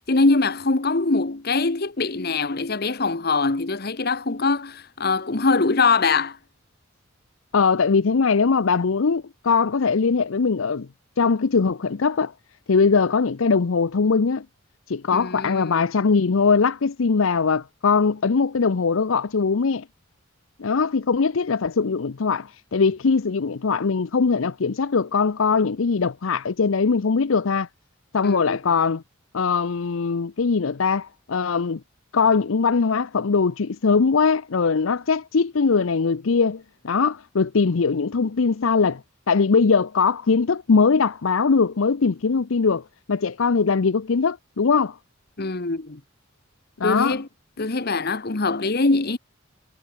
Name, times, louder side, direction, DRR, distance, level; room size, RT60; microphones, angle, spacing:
voice 1, 0.0-6.4 15.1-15.9 28.2-28.6 45.4-46.0 46.8-47.3 47.6-49.2, left 3 dB, 50° left, 1.1 m, -23 dB
voice 2, 7.5-10.9 11.2-12.3 12.7-14.4 14.9-19.8 20.6-27.7 28.1-29.0 29.3-31.8 32.1-39.0 39.3-42.8 43.1-45.0 46.8-47.2, left 5 dB, 75° left, 0.6 m, -21 dB
head